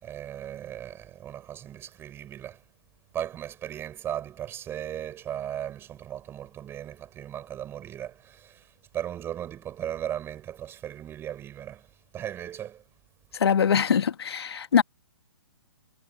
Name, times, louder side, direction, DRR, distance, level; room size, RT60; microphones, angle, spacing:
voice 1, 0.0-2.6 3.1-11.9 12.1-12.8, right 10 dB, 15° right, 6.2 m, -37 dB
voice 2, 13.4-14.8, left 7 dB, 75° left, 2.4 m, -22 dB
hypercardioid pair, 145°, 14 cm